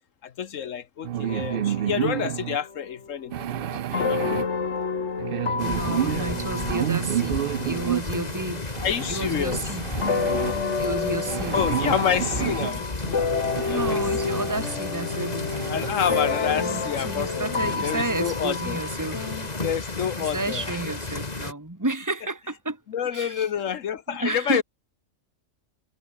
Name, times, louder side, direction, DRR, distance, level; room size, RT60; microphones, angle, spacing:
voice 1, 0.2-4.4 5.9-6.3 8.8-9.8 11.5-12.9 13.6-14.0 15.7-18.8 19.6-20.8 22.9-24.6, left 8 dB, 85° left, 1.4 m, -29 dB
sound 1, 1.0-2.6 3.3-4.5 5.2-8.0 8.7-10.5 11.3-12.7 13.4-14.6 15.0-15.1 15.4-16.3, right 11 dB, 60° right, 0.6 m, -30 dB
sound 2, 1.3-2.3 2.6-8.9 10.0-19.5, left 5 dB, 65° left, 2.1 m, -30 dB
sound 3, 5.6-21.5, left 3 dB, 30° left, 2.1 m, -33 dB
voice 2, 5.6-8.6 9.1-9.9 10.8-11.9 12.4-12.8 13.7-15.5 16.6-19.3 20.2-22.8 23.1-23.5 24.1-24.6, right 2 dB, 15° right, 2.4 m, -31 dB
omnidirectional pair, 1.3 m